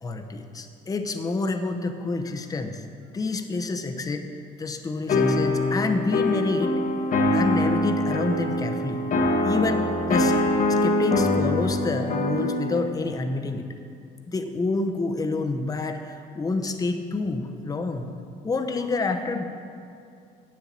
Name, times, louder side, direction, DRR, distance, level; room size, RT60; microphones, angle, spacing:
voice 1, 0.0-2.8 3.1-4.2 4.6-6.7 7.3-9.0 9.4-10.4 10.7-13.6 14.3-18.0 18.4-19.4, left 3 dB, 20° left, 5 dB, 0.8 m, -28 dB
sound 1, 5.1-12.9, left 2 dB, 50° left, 1.1 m, -23 dB
8.7 x 7.5 x 7.2 m, 2.5 s
cardioid pair, 110°, 17 cm